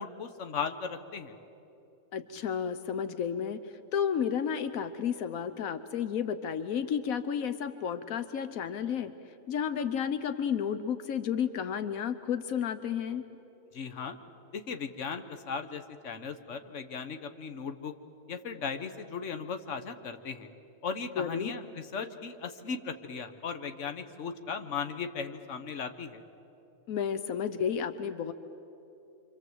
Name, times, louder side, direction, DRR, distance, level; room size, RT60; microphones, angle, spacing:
voice 1, 0.0-1.3 13.7-14.2 14.5-17.9 18.3-20.5 20.8-26.2, left 5 dB, 60° left, 7 dB, 1.5 m, -37 dB
voice 2, 2.1-9.1 9.5-13.2 21.2-21.5 26.9-28.3, left 8 dB, 85° left, 10 dB, 1.3 m, -32 dB
27.5 x 25.5 x 8.0 m, 3.0 s
omnidirectional pair, 1.4 m